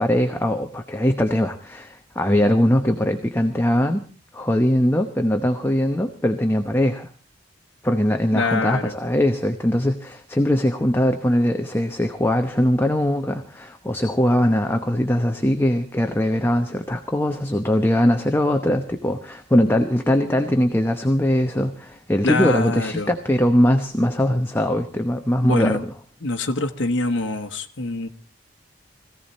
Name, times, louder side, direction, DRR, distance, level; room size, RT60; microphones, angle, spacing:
voice 1, 0.0-4.0 4.3-7.1 7.8-25.9, left 1 dB, 10° left, 0.9 m, -21 dB
voice 2, 8.3-8.9 22.2-23.1 25.5-25.8 26.2-28.1, left 2 dB, 75° left, 1.2 m, -24 dB
21.5 x 16.0 x 4.2 m
head